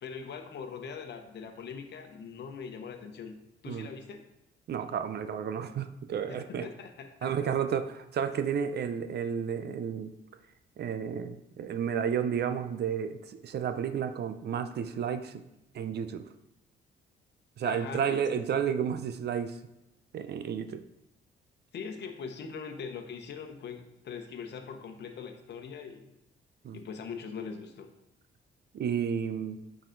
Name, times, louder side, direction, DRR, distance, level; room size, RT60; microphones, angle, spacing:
voice 1, 0.0-3.4 3.6-4.2 6.3-7.3 17.6-18.5 21.7-26.1 26.7-27.9, left 6 dB, 60° left, 5 dB, 1.0 m, -41 dB
voice 2, 4.7-6.7 7.2-10.1 10.8-15.4 15.7-16.2 17.6-19.6 20.1-20.8 26.6-26.8 28.7-29.6, right 7 dB, 55° right, 9 dB, 0.6 m, -32 dB
9.1 x 4.0 x 3.9 m, 0.88 s
cardioid pair, 90°, 20 cm